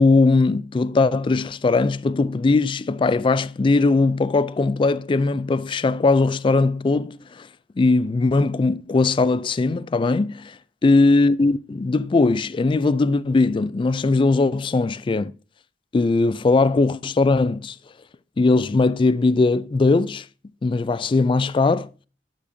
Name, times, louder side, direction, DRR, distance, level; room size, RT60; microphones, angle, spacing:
voice 1, 0.0-7.5 7.8-10.6 10.8-15.3 15.9-17.8 18.4-20.2 20.6-21.9, left 3 dB, 30° left, 0.3 m, -19 dB
11.5 x 4.8 x 2.7 m
head